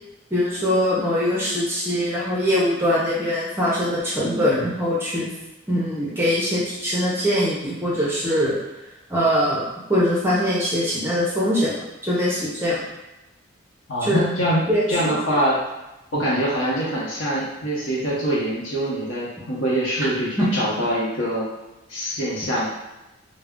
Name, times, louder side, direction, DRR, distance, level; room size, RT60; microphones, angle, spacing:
voice 1, 0.3-5.3 5.7-8.5 9.1-12.8 14.0-14.2 14.7-15.1 20.4-20.5, equal, 10° right, -7 dB, 0.5 m, -22 dB
voice 2, 13.9-15.6 16.1-21.5 21.9-22.7, equal, 85° left, -6 dB, 0.8 m, -24 dB
2.3 x 2.1 x 3.5 m, 1.0 s
head